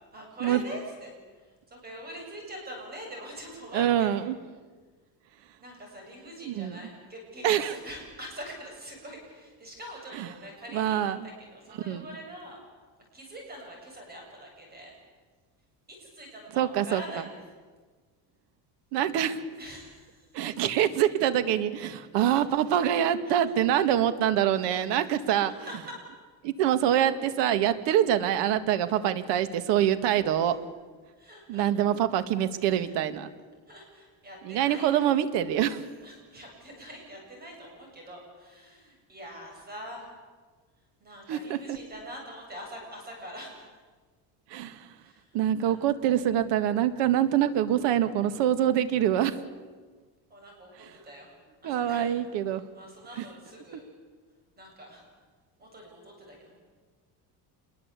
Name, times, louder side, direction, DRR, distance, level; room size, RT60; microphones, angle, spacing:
voice 1, 0.1-4.2 5.6-12.6 13.1-14.9 16.0-17.2 19.6-20.3 22.4-22.5 23.3-23.4 24.6-25.1 25.4-25.7 26.0-26.1 31.2-31.7 32.8-32.9 33.7-35.0 36.0-40.1 41.0-43.5 45.0-45.8 50.3-50.7 51.0-51.3 51.6-52.2 52.4-53.8 54.6-55.0 55.6-56.6, equal, 20° right, 1 dB, 7.8 m, -44 dB
voice 2, 3.7-4.4 6.4-6.8 7.4-7.7 10.1-10.3 10.7-11.3 11.9-12.0 16.5-17.0 18.9-19.4 20.3-25.5 26.4-30.6 31.5-33.3 34.4-35.8 41.3-41.8 44.5-44.9 45.3-49.4 51.6-52.6 53.2-53.3, right 10 dB, 80° right, 11 dB, 2.0 m, -25 dB
27.0 x 22.5 x 8.4 m, 1.4 s
cardioid pair, 175°, 41 cm